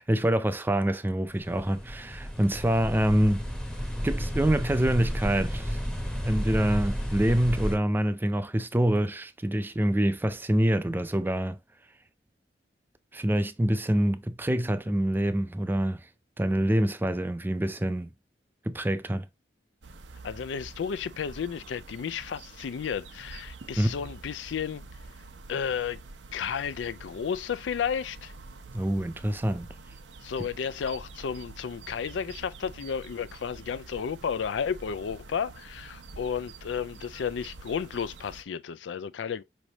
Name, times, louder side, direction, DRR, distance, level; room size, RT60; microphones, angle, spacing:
voice 1, 0.0-3.4 4.0-5.8 6.2-11.6 13.1-16.1 16.4-18.1 18.7-19.3 23.8-23.9 28.7-29.7, right 1 dB, 10° right, 0.4 m, -26 dB
sound 1, 1.3-7.8, equal, 5° left, 0.8 m, -32 dB
sound 2, 19.8-38.4, right 3 dB, 80° right, 0.7 m, -47 dB
voice 2, 20.2-24.8 25.5-26.0 26.3-28.3 30.2-39.4, left 7 dB, 90° left, 0.4 m, -32 dB
5.2 x 3.2 x 2.8 m
head